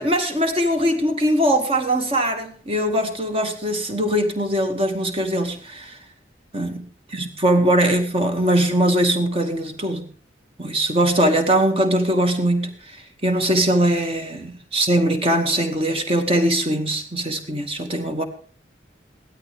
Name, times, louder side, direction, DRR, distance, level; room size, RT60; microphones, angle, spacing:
voice 1, 0.0-6.0 6.5-10.0 10.6-13.0 13.2-18.2, right 1 dB, 30° right, 2.0 m, -21 dB
17.5 x 12.5 x 3.5 m
head